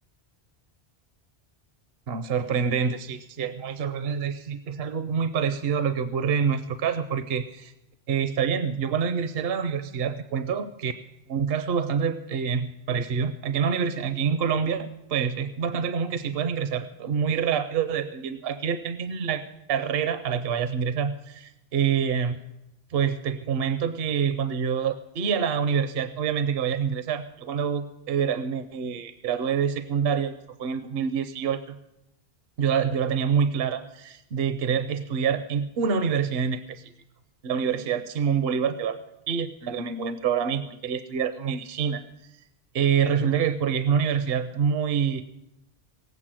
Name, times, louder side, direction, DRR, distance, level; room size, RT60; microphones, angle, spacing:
voice 1, 2.1-7.7 8.1-10.9 11.3-19.4 19.7-22.4 22.9-30.3 30.6-31.8 32.6-36.9 37.4-39.0 39.3-42.0 42.7-45.2, right 7 dB, 70° right, 10 dB, 0.9 m, -26 dB
17.5 x 8.3 x 7.4 m, 0.90 s
omnidirectional pair, 1.1 m